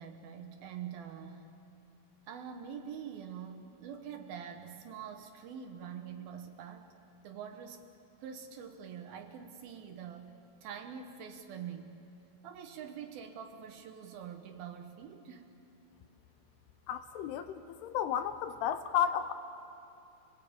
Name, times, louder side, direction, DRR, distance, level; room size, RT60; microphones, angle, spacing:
voice 1, 0.0-1.5 2.3-6.9 7.2-7.9 8.2-11.9 12.4-15.5, right 7 dB, 70° right, 6 dB, 2.6 m, -45 dB
voice 2, 16.9-19.3, left 9 dB, 80° left, 10 dB, 2.7 m, -33 dB
29.5 x 19.0 x 8.6 m, 2.8 s
omnidirectional pair, 5.0 m